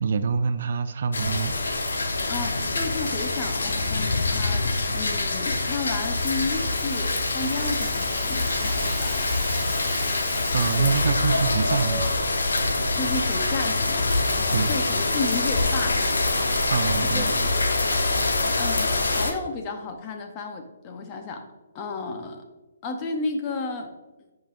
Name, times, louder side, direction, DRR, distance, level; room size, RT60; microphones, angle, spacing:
voice 1, 0.0-1.6 10.5-12.1 14.5-14.8 16.7-17.5, right 6 dB, 55° right, 11 dB, 0.4 m, -25 dB
sound 1, 1.1-19.3, left 2 dB, 90° left, 0.9 m, -25 dB
voice 2, 2.3-9.3 10.8-11.0 12.9-16.7 17.0-17.3 17.5-21.5 21.7-22.4 22.8-23.9, left 3 dB, 25° left, 4 dB, 0.7 m, -33 dB
Rattle (instrument), 5.9-11.9, equal, ahead, 1.1 m, -40 dB
7.7 x 5.1 x 2.5 m, 1.1 s
hypercardioid pair, 160°, 0 cm